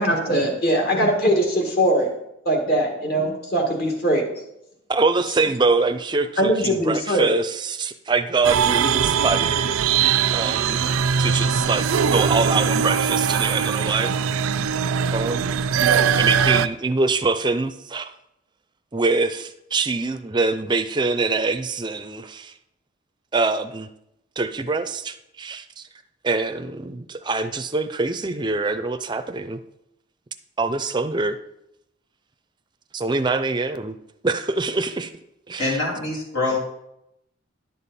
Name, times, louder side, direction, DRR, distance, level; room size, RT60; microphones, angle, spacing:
voice 1, 0.0-2.1 2.5-4.2 6.4-7.3, right 1 dB, 50° left, 2 dB, 1.9 m, -21 dB
voice 2, 4.9-9.8 10.3-10.8 11.2-14.1 15.1-15.6 16.1-18.1 18.9-22.5 23.3-23.9 24.4-25.8 26.2-29.6 30.6-31.4 32.9-33.9 34.2-35.1 35.5-35.8 36.5-36.6, right 3 dB, 20° right, 10 dB, 0.4 m, -24 dB
sound 1, 8.4-16.7, right 7 dB, 90° right, 0.4 m, -21 dB
voice 3, 35.6-36.6, left 2 dB, 85° left, -4 dB, 3.3 m, -24 dB
11.0 x 7.0 x 4.2 m, 0.82 s
head